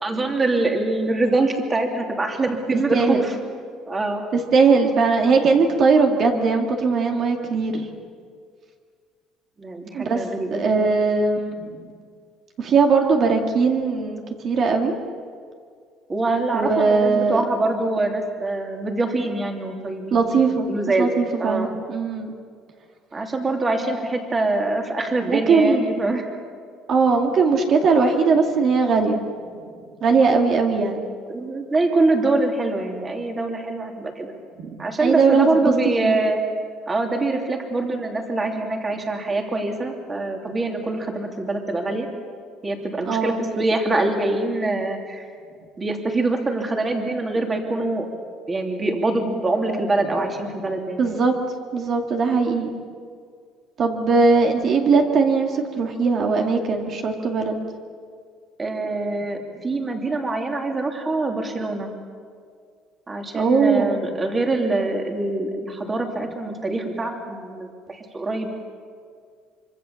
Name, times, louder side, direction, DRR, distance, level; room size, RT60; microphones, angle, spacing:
voice 1, 0.0-3.3 3.9-4.2 9.6-10.8 16.1-20.4 20.7-21.7 23.1-26.3 31.3-34.3 34.8-36.4 36.9-42.1 42.6-45.2 45.8-48.1 48.5-51.1 58.6-61.9 63.1-68.6, right 2 dB, 20° right, 2 dB, 2.9 m, -24 dB
voice 2, 2.9-3.3 4.3-7.9 9.9-10.2 10.5-11.8 12.6-15.0 16.5-17.4 20.1-20.7 21.0-22.3 25.3-25.9 26.9-29.2 30.0-31.0 34.6-35.7 36.0-36.2 43.0-43.5 51.0-51.3 51.7-52.7 53.8-57.6 63.3-63.9, right 4 dB, 45° right, 2 dB, 2.3 m, -20 dB
25.0 x 25.0 x 7.2 m, 2.1 s
cardioid pair, 145°, 0 cm